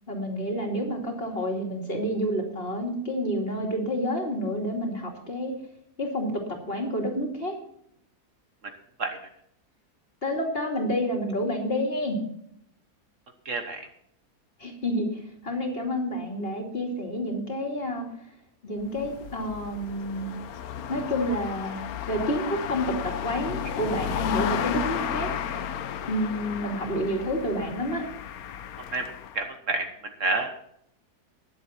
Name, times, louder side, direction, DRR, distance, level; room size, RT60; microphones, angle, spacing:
voice 1, 0.1-5.5 6.0-7.5 10.2-12.2 14.6-18.0 18.6-20.3 20.9-25.3 26.1-28.1, equal, 35° left, 2 dB, 2.8 m, -29 dB
voice 2, 13.4-13.9 28.9-29.1 29.3-29.9 30.2-30.5, right 3 dB, 55° right, 6 dB, 1.5 m, -28 dB
sound 1, 18.8-29.4, left 9 dB, 70° left, 1.2 m, -33 dB
19.0 x 7.7 x 4.3 m, 0.73 s
omnidirectional pair, 1.7 m